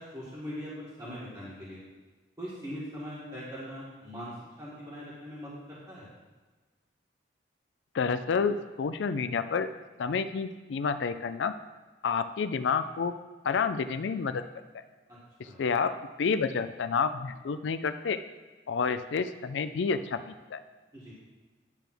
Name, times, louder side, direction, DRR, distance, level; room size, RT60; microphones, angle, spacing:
voice 1, 0.0-1.8 2.4-4.3 4.6-6.1 15.4-15.6 20.9-21.1, equal, 20° right, -9 dB, 1.7 m, -41 dB
voice 2, 7.9-9.7 10.0-11.5 12.0-13.1 13.4-14.4 15.6-18.2 18.7-20.6, left 5 dB, 85° left, 11 dB, 0.4 m, -29 dB
10.0 x 3.5 x 6.0 m, 1.3 s
head